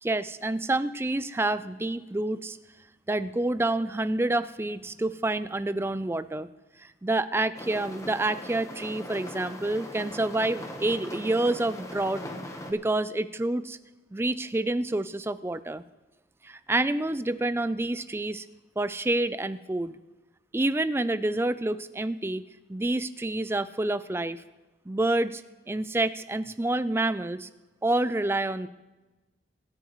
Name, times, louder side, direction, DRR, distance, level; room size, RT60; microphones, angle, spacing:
voice 1, 0.0-2.6 3.1-6.5 6.8-12.2 12.7-13.8 14.1-15.8 16.4-18.5 18.8-20.0 20.5-22.4 22.7-24.4 24.9-25.4 25.7-27.5 27.8-28.7, right 2 dB, 15° right, 13 dB, 0.4 m, -28 dB
sound 1, 7.6-12.7, left 1 dB, 15° left, 1.1 m, -40 dB
24.5 x 10.5 x 3.1 m, 1.1 s
head